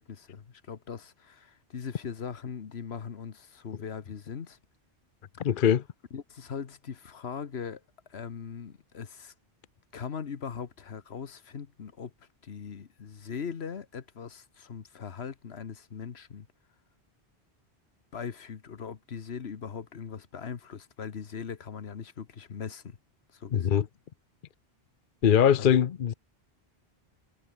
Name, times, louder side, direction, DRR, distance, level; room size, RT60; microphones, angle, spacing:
voice 1, 0.0-4.6 5.4-5.5 6.1-7.8 8.1-9.3 9.9-16.5 18.1-23.0 23.3-23.9 25.6-25.8, left 6 dB, 80° left, 1.5 m, -40 dB
voice 2, 5.4-5.8 23.5-23.9 25.2-26.1, left 8 dB, 55° left, 0.8 m, -22 dB
omnidirectional pair, 1.1 m